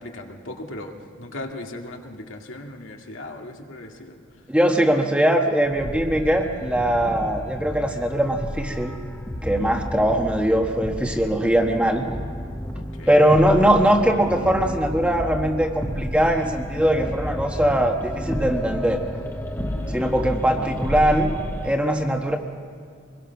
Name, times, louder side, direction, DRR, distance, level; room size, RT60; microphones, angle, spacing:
voice 1, 0.0-4.2 12.7-13.2 19.6-20.0, left 1 dB, 75° left, 1 dB, 2.2 m, -38 dB
voice 2, 4.5-9.0 9.4-12.0 13.1-19.0 19.9-21.3 21.6-22.4, right 1 dB, 5° right, 2 dB, 1.3 m, -21 dB
sound 1, 5.6-21.7, equal, 10° left, 1.1 m, -31 dB
25.5 x 21.5 x 5.9 m, 2.1 s
head